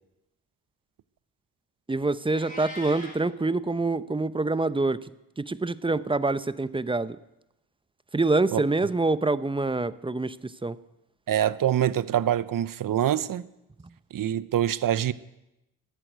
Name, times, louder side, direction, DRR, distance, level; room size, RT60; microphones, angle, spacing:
voice 1, 1.9-5.0 5.4-7.2 8.1-10.8, right 3 dB, 10° right, 0.7 m, -26 dB
Meow, 2.3-3.2, left 1 dB, 20° left, 4.0 m, -40 dB
voice 2, 11.3-13.5 14.1-15.1, right 11 dB, 50° right, 0.7 m, -25 dB
14.0 x 10.0 x 9.3 m
supercardioid pair, 65°, 42 cm